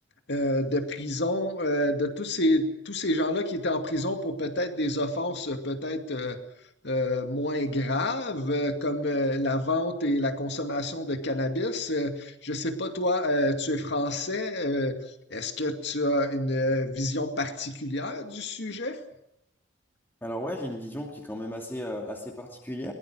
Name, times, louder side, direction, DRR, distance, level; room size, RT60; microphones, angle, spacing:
voice 1, 0.3-6.4 6.8-15.0 15.3-19.0, left 1 dB, 65° left, 6 dB, 2.4 m, -28 dB
voice 2, 20.2-22.9, equal, 10° left, 0 dB, 2.7 m, -35 dB
23.0 x 21.0 x 6.4 m, 0.83 s
head